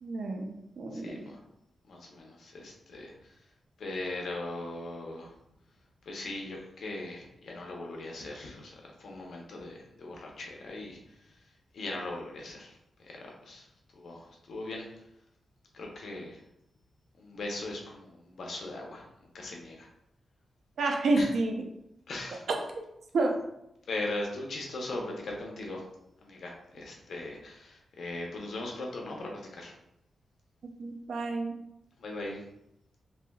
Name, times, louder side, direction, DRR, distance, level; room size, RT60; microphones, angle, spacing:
voice 1, 0.0-1.3 20.8-21.5 23.1-23.4 30.8-31.6, right 2 dB, 75° right, 2 dB, 0.5 m, -29 dB
voice 2, 0.9-1.4 1.9-3.3 3.8-5.3 6.0-11.0 11.7-12.8 13.0-13.7 13.9-14.8 15.7-16.4 17.2-19.1 19.3-19.9 21.1-21.3 22.1-22.4 23.9-25.8 26.2-29.7 32.0-32.4, left 2 dB, 70° left, 0 dB, 0.7 m, -39 dB
3.4 x 2.5 x 2.3 m, 0.82 s
wide cardioid pair, 105°, 0 cm